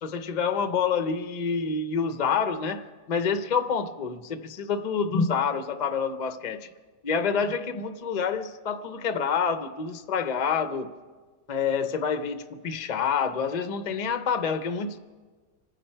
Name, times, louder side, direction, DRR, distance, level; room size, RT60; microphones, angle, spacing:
voice 1, 0.0-6.7 7.0-10.9 11.5-15.0, left 6 dB, 50° left, 9 dB, 0.5 m, -27 dB
26.0 x 10.0 x 4.4 m, 1.4 s
omnidirectional pair, 1.7 m